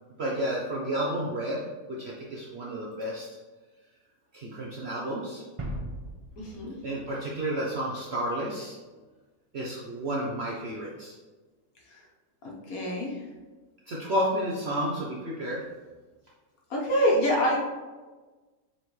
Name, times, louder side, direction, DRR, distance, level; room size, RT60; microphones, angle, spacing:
voice 1, 0.2-3.4 4.3-5.4 6.8-8.8 9.5-11.1 13.9-15.6, right 1 dB, 50° right, -4 dB, 0.9 m, -31 dB
sound 1, 5.6-8.3, right 1 dB, 30° right, 0.6 m, -40 dB
voice 2, 6.4-6.8 11.8-12.1 12.4-13.3 16.7-17.6, equal, 65° left, -2 dB, 1.7 m, -26 dB
7.6 x 4.2 x 3.2 m, 1.3 s
omnidirectional pair, 1.6 m